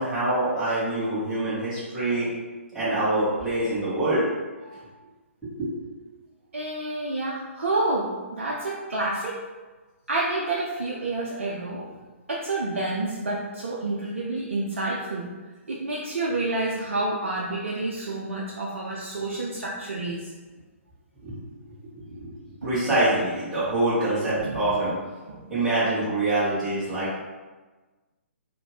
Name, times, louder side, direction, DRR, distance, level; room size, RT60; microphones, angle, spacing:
voice 1, 0.0-2.3 2.7-4.2 4.6-4.8 5.6-5.7 21.2-21.4 22.1-22.3 22.6-24.9 25.5-27.2, right 2 dB, 5° right, -14 dB, 1.2 m, -25 dB
voice 2, 6.5-9.5 10.1-11.9 12.3-15.3 15.7-20.3 22.6-22.7 24.4-24.5 25.3-25.4, right 2 dB, 65° right, -4 dB, 0.4 m, -29 dB
2.7 x 2.5 x 3.0 m, 1.3 s
figure-of-eight pair, 125°, 7 cm